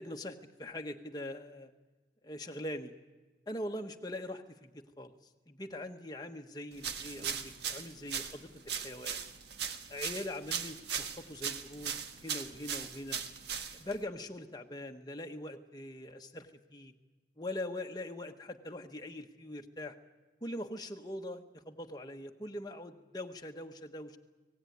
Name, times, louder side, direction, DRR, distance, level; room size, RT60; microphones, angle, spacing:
voice 1, 0.0-1.7 2.2-2.9 3.5-5.1 5.5-9.2 9.9-13.2 13.7-16.9 17.4-20.0 20.4-24.2, left 1 dB, 20° left, 4 dB, 1.2 m, -42 dB
sound 1, 6.8-14.0, right 7 dB, 70° right, 1.5 m, -39 dB
25.0 x 18.0 x 9.4 m, 1.3 s
head